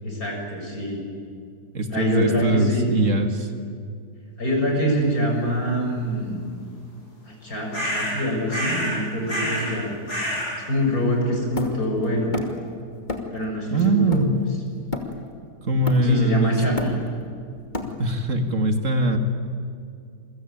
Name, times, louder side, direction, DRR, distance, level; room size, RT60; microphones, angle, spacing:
voice 1, 0.0-1.0 1.9-2.9 4.4-6.4 7.2-10.0 10.6-12.4 13.3-14.2 16.0-17.0, equal, 60° left, 1 dB, 7.0 m, -25 dB
voice 2, 1.7-3.5 13.7-14.4 15.6-16.6 18.0-19.2, right 1 dB, 50° right, 6 dB, 2.2 m, -21 dB
sound 1, 7.7-8.2 8.5-9.0 9.3-9.7 10.1-10.5, equal, 75° left, 7.5 m, -27 dB
Hammer, 11.6-12.7 13.1-13.4 13.8-15.4 15.9-16.3 16.6-18.3, left 3 dB, 30° left, 2.7 m, -31 dB
28.5 x 23.0 x 9.2 m, 2.4 s
omnidirectional pair, 1.7 m